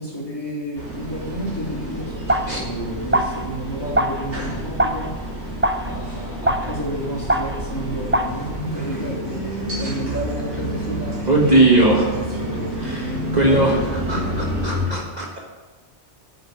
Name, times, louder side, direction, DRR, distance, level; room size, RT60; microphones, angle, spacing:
voice 1, 0.0-5.1 5.8-8.5 8.7-12.1 12.4-12.7 13.4-13.6 14.1-14.5, equal, 20° left, -6 dB, 3.9 m, -31 dB
sound 1, 0.8-14.8, right 1 dB, 75° right, 4.4 m, -29 dB
sound 2, 2.0-8.3, right 1 dB, 15° right, 0.5 m, -25 dB
voice 2, 11.3-12.1 12.8-15.4, right 2 dB, 35° right, -2 dB, 1.6 m, -19 dB
9.3 x 7.8 x 8.7 m, 1.2 s
omnidirectional pair, 1.2 m